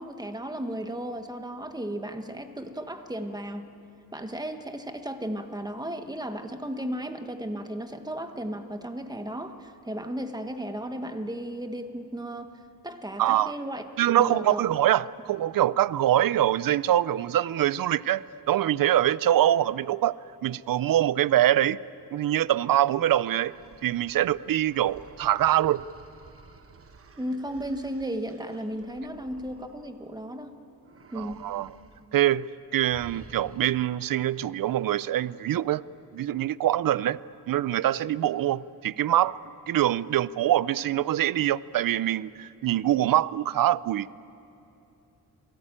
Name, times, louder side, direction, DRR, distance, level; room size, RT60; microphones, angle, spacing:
voice 1, 0.0-3.7 4.1-12.5 12.8-14.6 27.2-30.5 31.1-31.4, right 1 dB, 10° right, 1.2 m, -35 dB
voice 2, 13.2-13.5 14.0-21.8 22.1-23.5 23.8-25.8 31.2-31.7 32.1-32.5 32.7-35.8 36.1-37.2 37.5-39.4 39.7-44.1, right 12 dB, 60° right, 0.5 m, -24 dB
sound 1, 23.2-30.4 30.8-32.1 32.3-32.5 32.9-34.0, right 4 dB, 35° right, 1.1 m, -52 dB
28.0 x 18.0 x 8.8 m
wide cardioid pair, 160°, 38 cm